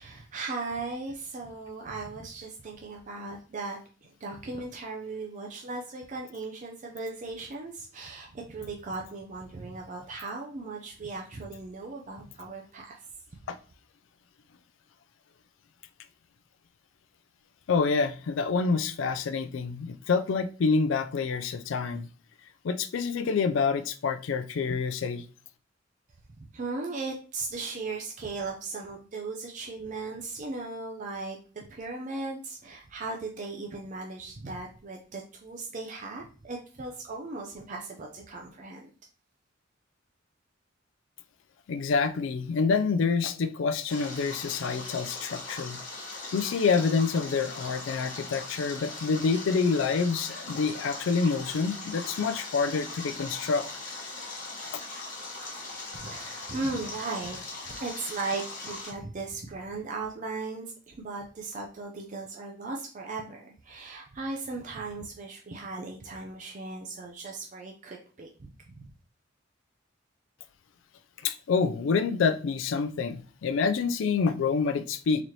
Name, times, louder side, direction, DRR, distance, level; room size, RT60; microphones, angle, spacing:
voice 1, 0.0-13.0 26.4-38.9 55.9-57.4 57.7-68.8, right 3 dB, 40° right, 0.5 m, -37 dB
voice 2, 17.7-22.1 22.6-25.2 41.7-45.8 46.3-53.7 71.2-75.2, left 5 dB, 70° left, 0.4 m, -27 dB
Stream, 43.9-58.9, left 3 dB, 45° left, 1.2 m, -40 dB
4.0 x 2.8 x 3.1 m
head